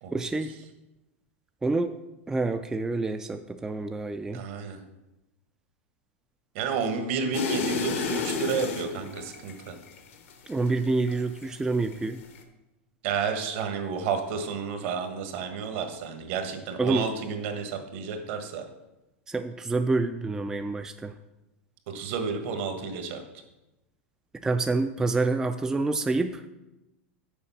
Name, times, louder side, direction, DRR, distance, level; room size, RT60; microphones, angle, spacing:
voice 1, 0.1-0.6 1.6-1.9 2.3-4.4 10.5-12.2 16.8-17.0 19.3-21.1 24.4-26.5, right 3 dB, 10° right, 8 dB, 0.3 m, -27 dB
voice 2, 4.3-4.8 6.5-9.8 13.0-18.6 21.9-23.2, right 5 dB, 60° right, 6 dB, 1.3 m, -31 dB
sound 1, 7.3-11.5 11.8-12.4, left 5 dB, 75° left, 1.1 m, -32 dB
7.0 x 5.0 x 5.7 m, 0.99 s
hypercardioid pair, 125°, 7 cm